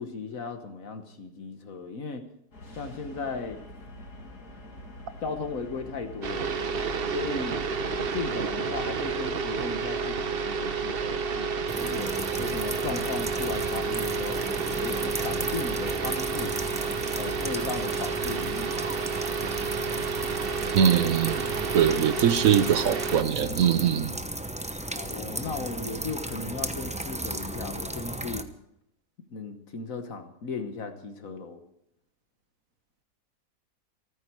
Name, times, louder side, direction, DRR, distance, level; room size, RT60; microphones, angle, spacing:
voice 1, 0.0-2.2 2.8-3.6 5.2-6.6 7.1-7.6 7.9-12.1 12.4-14.4 14.8-16.5 17.1-18.8 25.0-28.5 29.3-31.6, left 4 dB, 60° left, 7 dB, 1.7 m, -36 dB
sound 1, 2.5-8.8, left 1 dB, 75° left, 3.1 m, -45 dB
sound 2, 6.2-23.2, right 5 dB, 45° right, 0.9 m, -30 dB
sound 3, 11.7-28.4, right 1 dB, 10° right, 0.4 m, -35 dB
voice 2, 20.7-21.4 21.7-24.1, right 8 dB, 65° right, 12 dB, 1.1 m, -22 dB
27.0 x 9.7 x 4.7 m, 0.76 s
omnidirectional pair, 1.7 m